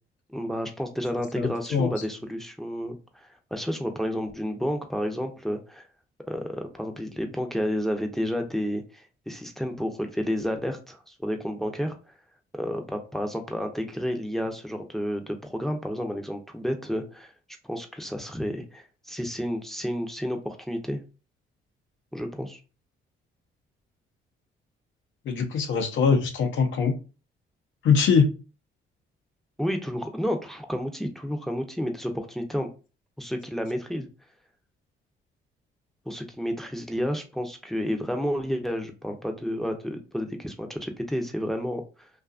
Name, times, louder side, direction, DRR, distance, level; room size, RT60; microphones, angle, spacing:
voice 1, 0.3-5.8 6.3-12.0 12.5-17.3 17.6-21.0 22.1-22.6 29.6-32.7 33.2-34.1 36.1-42.1, equal, ahead, 4 dB, 0.5 m, -31 dB
voice 2, 1.4-1.9 25.3-26.9 27.8-28.3, left 5 dB, 75° left, 4 dB, 0.6 m, -22 dB
2.6 x 2.4 x 2.4 m, 0.33 s
cardioid pair, 90°, 20 cm